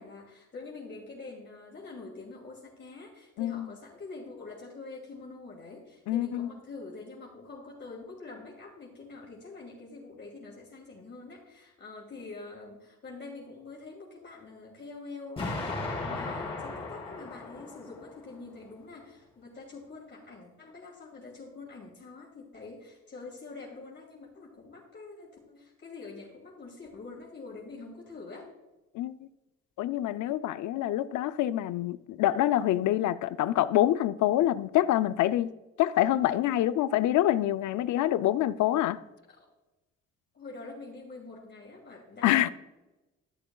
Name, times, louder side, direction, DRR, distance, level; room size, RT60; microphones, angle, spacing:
voice 1, 0.0-28.5 39.3-39.5 40.3-42.5, left 3 dB, 35° left, 2.7 m, -45 dB
voice 2, 3.4-3.7 6.1-6.5 28.9-29.2 29.8-35.5 35.8-39.0 42.2-42.5, left 13 dB, 75° left, 0.5 m, -26 dB
Explosion, 15.4-18.3, left 3 dB, 20° left, 3.1 m, -36 dB
13.0 x 6.9 x 2.3 m
cardioid pair, 90°, 30 cm